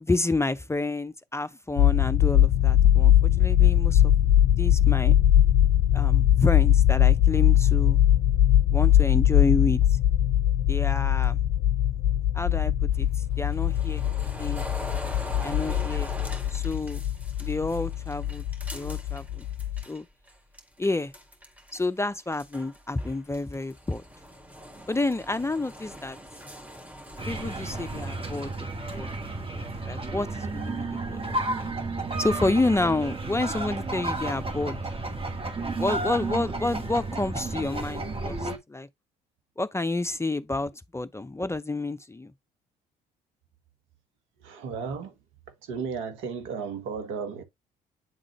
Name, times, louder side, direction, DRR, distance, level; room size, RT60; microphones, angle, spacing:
voice 1, 0.0-4.1 4.6-5.2 5.9-8.0 8.7-9.8 10.7-11.4 12.3-13.1 13.4-14.0 14.4-14.6 15.4-16.1 16.5-17.0 17.4-18.4 18.7-19.4 19.9-20.0 20.8-21.1 21.7-24.0 24.9-26.2 27.3-29.1 29.5-31.4 32.2-34.8 35.8-38.9 39.6-42.3, left 2 dB, 15° left, 0.5 m, -29 dB
sound 1, 1.8-19.8, left 11 dB, 70° left, 0.5 m, -21 dB
sound 2, 12.9-20.0 20.3-21.9 22.2-29.3, equal, 5° right, 1.8 m, -43 dB
sound 3, 27.2-38.6, right 2 dB, 25° right, 1.6 m, -32 dB
voice 2, 44.4-45.1 45.6-47.4, right 5 dB, 70° right, 1.2 m, -34 dB
8.9 x 3.8 x 3.1 m
hypercardioid pair, 50°, 21 cm